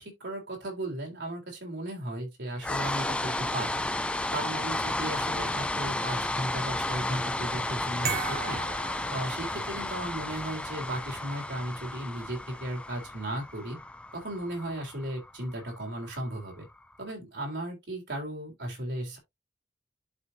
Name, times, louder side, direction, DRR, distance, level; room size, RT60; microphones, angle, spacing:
voice 1, 0.0-3.9 4.3-8.6 9.1-13.8 14.1-16.7 17.0-19.2, right 1 dB, 85° right, 3.7 m, -36 dB
sound 1, 2.6-16.7, left 1 dB, 5° left, 0.4 m, -33 dB
sound 2, 8.0-10.0, right 6 dB, 55° right, 1.6 m, -36 dB
11.5 x 4.1 x 2.7 m
head